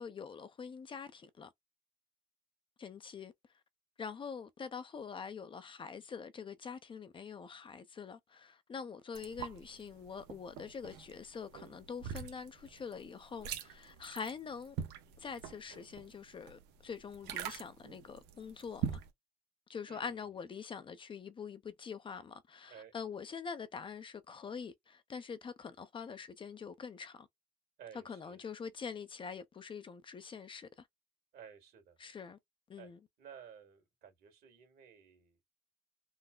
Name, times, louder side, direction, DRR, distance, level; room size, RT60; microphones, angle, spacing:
voice 1, 0.0-1.5 2.8-3.3 4.0-14.8 15.2-19.0 19.7-27.3 28.1-30.9 32.0-32.4 32.7-33.0, left 6 dB, 30° left, 0.4 m, -45 dB
sound 1, 9.1-19.1, right 8 dB, 85° right, 0.8 m, -44 dB
voice 2, 19.8-20.2 22.7-22.9 27.8-28.4 31.3-32.0 32.8-32.9 33.2-35.6, right 8 dB, 70° right, 1.7 m, -55 dB
3.8 x 2.0 x 2.2 m
cardioid pair, 110°, 17 cm